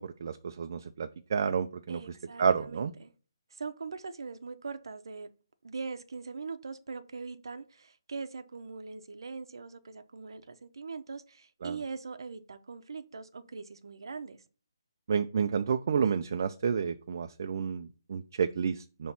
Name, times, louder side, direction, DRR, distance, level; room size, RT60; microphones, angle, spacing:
voice 1, 0.0-2.0 2.4-2.9 11.6-11.8 15.1-19.1, right 6 dB, 45° right, 0.5 m, -30 dB
voice 2, 1.9-3.1 3.5-5.3 5.6-14.4, right 4 dB, 75° right, 0.7 m, -41 dB
6.0 x 3.1 x 5.5 m
hypercardioid pair, 170°, 2 cm